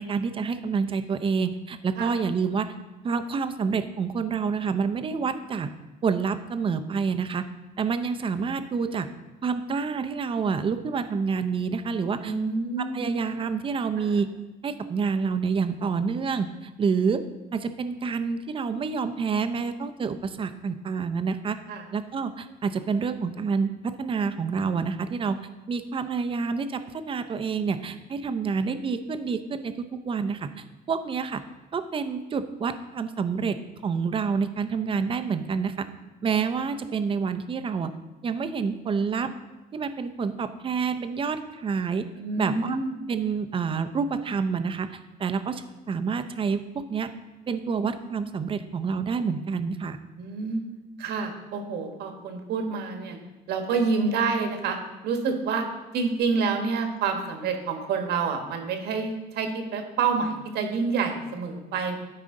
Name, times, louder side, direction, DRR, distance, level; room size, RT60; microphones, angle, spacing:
voice 1, 0.0-2.7 3.0-5.7 6.0-7.4 7.8-9.1 9.4-12.3 12.9-14.3 14.6-17.2 17.5-21.6 21.9-23.7 24.0-25.4 25.7-29.7 30.0-30.5 30.9-31.4 31.7-33.6 33.8-35.8 36.2-37.9 38.2-39.3 39.7-42.0 42.4-42.8 43.1-44.9 45.2-46.6 46.9-47.1 47.5-50.0, right 5 dB, 30° right, 9 dB, 0.6 m, -28 dB
voice 2, 12.2-13.1 14.0-14.2 21.7-21.8 42.2-42.9 50.2-50.6 51.0-53.2 53.5-54.8 55.0-55.6 55.9-62.0, right 5 dB, 75° right, 5 dB, 1.4 m, -28 dB
12.5 x 4.9 x 3.7 m, 1.1 s
cardioid pair, 110°, 17 cm